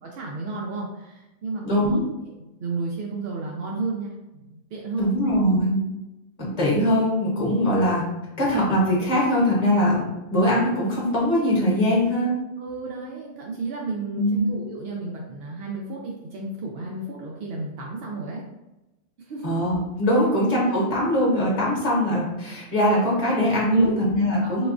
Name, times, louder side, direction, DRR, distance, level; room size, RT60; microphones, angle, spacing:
voice 1, 0.0-2.3 2.6-5.1 12.6-18.4 19.3-19.5 20.2-20.3 23.7-24.0 24.4-24.7, right 3 dB, 70° right, -2 dB, 0.5 m, -32 dB
voice 2, 1.6-2.0 5.0-5.8 6.4-8.0 8.4-10.0 10.3-12.3 14.1-14.4 19.4-24.7, equal, 30° left, -4 dB, 0.9 m, -21 dB
4.0 x 2.3 x 2.5 m, 0.98 s
omnidirectional pair, 1.5 m